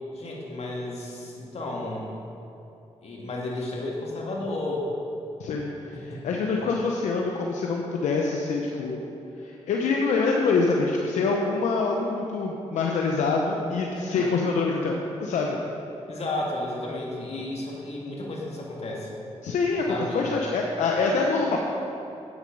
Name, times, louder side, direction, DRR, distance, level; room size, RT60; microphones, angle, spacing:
voice 1, 0.1-2.1 3.0-4.9 5.9-6.3 13.9-14.5 16.1-19.2 19.9-20.3, left 1 dB, 60° left, -3 dB, 2.2 m, -33 dB
voice 2, 5.4-9.0 9.4-15.6 19.4-21.6, left 4 dB, 85° left, 0 dB, 0.7 m, -25 dB
8.5 x 7.9 x 5.3 m, 3.0 s
cardioid pair, 65°, 12 cm